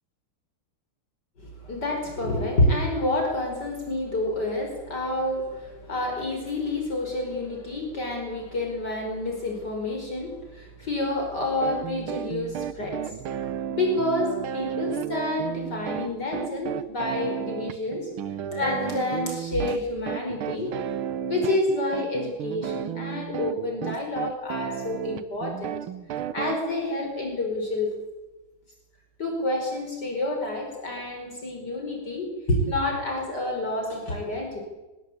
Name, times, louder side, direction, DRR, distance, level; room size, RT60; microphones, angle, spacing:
voice 1, 1.4-13.1 13.4-18.1 18.5-20.8 21.2-25.7 26.3-27.9 29.2-34.6, left 1 dB, 50° left, 2 dB, 5.8 m, -28 dB
sound 1, 11.6-26.6, right 9 dB, 85° right, 1.9 m, -33 dB
28.5 x 21.0 x 8.6 m, 1.1 s
omnidirectional pair, 2.3 m